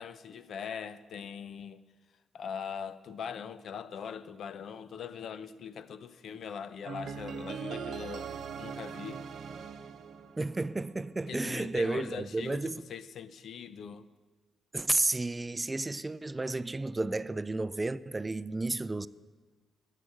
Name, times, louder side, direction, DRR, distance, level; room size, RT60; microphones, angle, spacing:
voice 1, 0.0-1.8 2.3-9.2 11.3-14.1, left 7 dB, 65° left, 0.6 m, -41 dB
sound 1, 6.9-10.9, right 6 dB, 65° right, 0.8 m, -41 dB
voice 2, 10.4-12.8 14.7-19.1, right 2 dB, 20° right, 0.4 m, -32 dB
13.0 x 7.5 x 8.4 m
cardioid pair, 85°, 0 cm